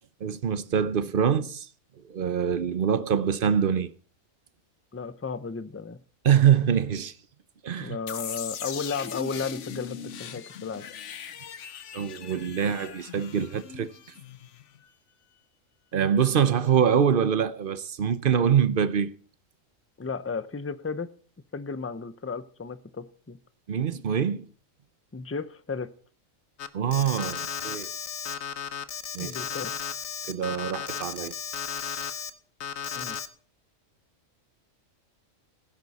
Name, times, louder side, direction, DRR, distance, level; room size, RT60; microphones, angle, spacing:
voice 1, 0.2-1.7 2.1-3.9 6.2-7.1 7.6-8.0 11.9-13.9 15.9-19.1 23.7-24.5 26.7-27.9 29.1-29.3 30.3-31.3 31.8-32.1, right 8 dB, 50° right, 0.9 m, -24 dB
voice 2, 4.9-6.0 7.8-10.9 20.0-21.1 21.5-23.4 25.1-25.9 29.2-29.7 33.0-33.2, left 5 dB, 15° left, 0.5 m, -34 dB
sound 1, 8.1-14.9, left 8 dB, 65° left, 1.1 m, -40 dB
Alarm, 26.6-32.3 32.6-33.3, left 7 dB, 85° left, 1.4 m, -34 dB
15.5 x 11.0 x 4.2 m
omnidirectional pair, 1.4 m